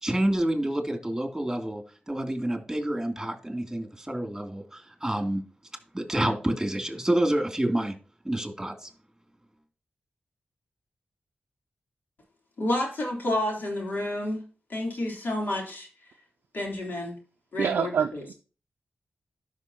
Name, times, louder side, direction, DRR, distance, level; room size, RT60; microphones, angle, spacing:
voice 1, 0.0-1.8 2.1-5.4 5.9-8.0 8.2-8.9, right 1 dB, 10° right, 4 dB, 2.7 m, -28 dB
voice 2, 12.6-14.4 14.7-15.9 16.5-17.2 17.5-18.3, left 1 dB, 70° left, -1 dB, 3.2 m, -30 dB
voice 3, 17.6-18.3, right 7 dB, 90° right, 6 dB, 0.4 m, -26 dB
12.5 x 5.9 x 2.9 m, 0.36 s
cardioid pair, 40°, 3 cm